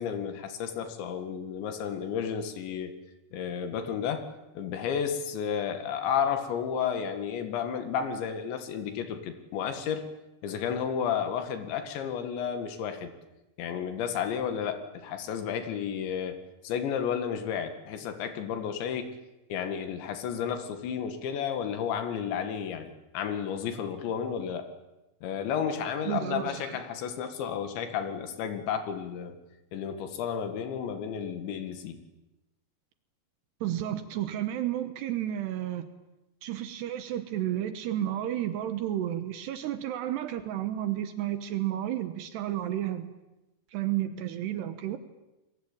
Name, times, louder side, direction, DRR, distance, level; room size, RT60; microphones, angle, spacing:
voice 1, 0.0-2.9 3.3-10.1 10.4-13.1 13.6-16.4 16.6-19.2 19.5-24.7 25.2-29.4 29.7-32.0, left 7 dB, 90° left, 8 dB, 4.3 m, -32 dB
voice 2, 26.1-26.8 33.6-35.9 36.4-43.1 43.7-45.0, right 12 dB, 75° right, 9 dB, 3.2 m, -32 dB
28.5 x 22.0 x 8.9 m, 0.98 s
omnidirectional pair, 5.0 m